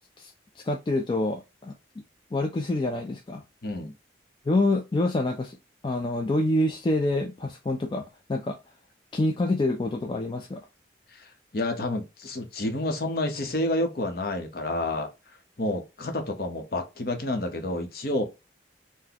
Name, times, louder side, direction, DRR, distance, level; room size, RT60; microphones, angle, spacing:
voice 1, 0.2-1.7 2.3-3.4 4.5-5.6 5.8-8.0 8.3-8.6 9.1-10.6, left 2 dB, 25° left, 0.3 m, -26 dB
voice 2, 3.6-3.9 11.5-15.1 15.6-18.2, left 1 dB, 50° left, 0.7 m, -29 dB
4.0 x 2.1 x 2.8 m
head